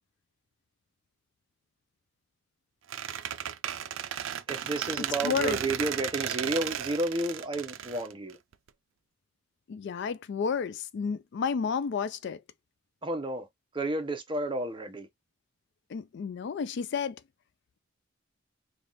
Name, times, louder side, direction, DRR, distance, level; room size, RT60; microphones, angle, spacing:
Squeak, 2.9-8.7, right 9 dB, 70° right, 0.4 m, -34 dB
voice 1, 4.5-8.4 13.0-13.5 13.7-15.1, right 2 dB, 25° right, 0.7 m, -31 dB
voice 2, 5.2-5.6 9.7-12.4 15.9-17.2, left 6 dB, 60° left, 0.4 m, -31 dB
3.4 x 2.4 x 4.0 m
head